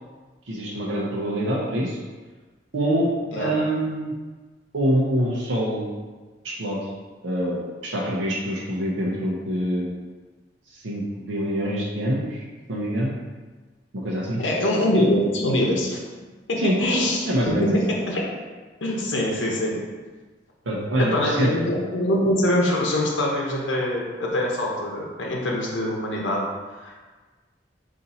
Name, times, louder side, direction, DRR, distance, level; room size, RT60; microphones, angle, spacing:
voice 1, 0.5-2.0 2.7-3.1 3.4-4.1 4.7-5.9 6.4-6.9 7.2-9.9 10.7-12.4 12.7-13.1 14.0-14.4 16.6-16.8 17.2-17.8 20.7-21.5, equal, 90° right, -4 dB, 0.7 m, -25 dB
voice 2, 14.4-16.0 16.5-17.3 17.6-17.8 18.1-18.2 18.8-19.8 21.0-26.4 26.8-27.0, left 1 dB, 85° left, -2 dB, 0.8 m, -23 dB
4.0 x 2.6 x 4.1 m, 1.3 s
head